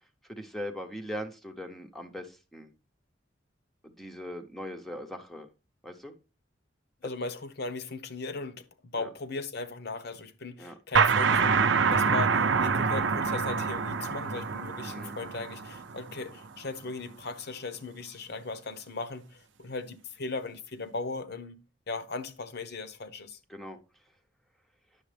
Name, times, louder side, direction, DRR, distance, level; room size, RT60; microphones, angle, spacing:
voice 1, 0.3-2.7 3.8-5.5 5.8-6.1 8.9-9.1 10.6-10.8 14.8-15.2 23.5-23.8, equal, ahead, 0.8 m, -40 dB
voice 2, 7.0-11.6 11.9-21.6 21.9-23.4, left 3 dB, 60° left, 0.9 m, -37 dB
sound 1, 10.9-16.4, right 5 dB, 65° right, 0.6 m, -26 dB
9.9 x 7.0 x 3.3 m
head